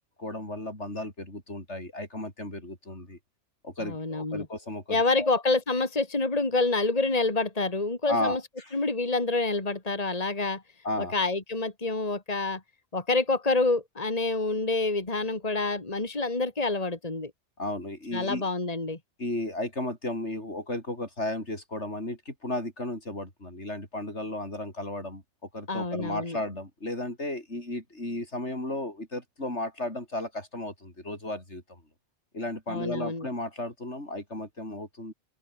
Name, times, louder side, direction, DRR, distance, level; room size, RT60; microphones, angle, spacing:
voice 1, 0.2-3.2 3.6-5.3 8.1-8.7 10.8-11.1 17.6-18.4 19.2-25.2 25.5-31.8 32.3-35.1, left 1 dB, 90° left, 7.4 m, -34 dB
voice 2, 3.8-4.5 4.9-8.4 8.7-10.6 11.0-12.6 12.9-17.3 18.1-19.0 25.7-26.4 32.7-33.3, left 3 dB, 35° left, 2.6 m, -27 dB
open air
omnidirectional pair, 1.1 m